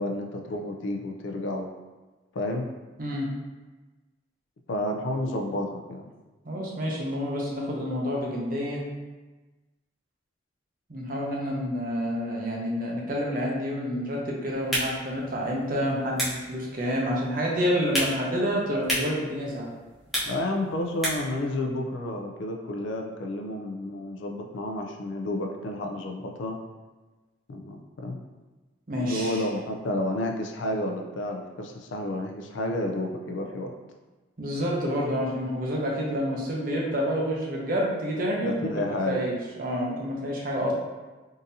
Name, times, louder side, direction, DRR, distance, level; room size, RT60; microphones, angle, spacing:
voice 1, 0.0-1.7 2.3-2.7 4.7-6.1 20.2-26.6 27.5-28.2 29.0-33.7 38.4-39.3, left 1 dB, 70° left, 2 dB, 0.4 m, -31 dB
voice 2, 6.5-8.8 10.9-19.7 28.9-29.5 34.4-40.7, equal, 45° right, -2 dB, 0.6 m, -28 dB
sound 1, 14.5-21.4, equal, ahead, 0.6 m, -34 dB
3.7 x 2.7 x 2.6 m, 1.2 s
head